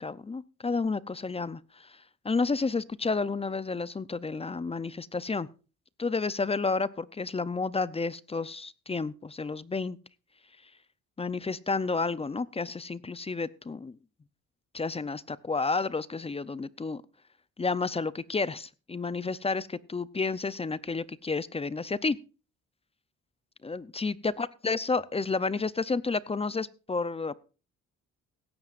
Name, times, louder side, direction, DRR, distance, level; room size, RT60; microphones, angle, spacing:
voice 1, 0.0-1.9 2.2-5.5 6.0-10.0 11.2-14.0 14.7-17.0 17.6-22.2 23.6-27.3, left 4 dB, 20° left, 18 dB, 0.6 m, -31 dB
16.5 x 13.0 x 2.5 m, 0.34 s
cardioid pair, 90°, 30 cm